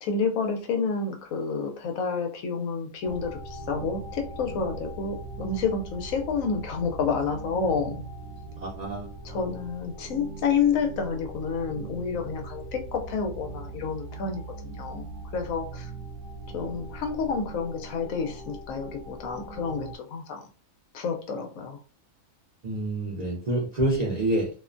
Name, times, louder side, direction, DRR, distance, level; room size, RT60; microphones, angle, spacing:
voice 1, 0.0-8.0 9.2-15.9 16.5-20.5 20.9-21.8, left 5 dB, 85° left, 4 dB, 1.0 m, -29 dB
sound 1, 3.0-20.0, right 3 dB, 70° right, 0.9 m, -40 dB
voice 2, 8.6-9.1 22.6-24.5, right 1 dB, 50° right, -4 dB, 0.5 m, -27 dB
2.5 x 2.2 x 2.4 m, 0.39 s
omnidirectional pair, 1.4 m